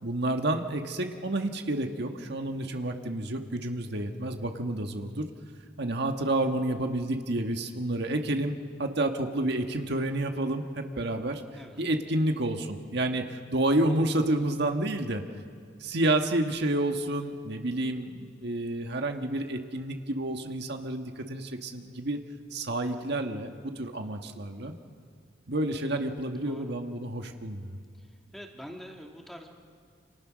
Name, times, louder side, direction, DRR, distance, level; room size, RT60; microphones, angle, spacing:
voice 1, 0.0-5.3 5.8-11.4 11.8-15.2 15.8-22.2 22.5-24.7 25.5-27.8, right 1 dB, 60° right, 4 dB, 1.6 m, -29 dB
voice 2, 28.3-29.5, equal, ahead, 1 dB, 2.3 m, -45 dB
28.5 x 27.5 x 6.4 m, 2.2 s
head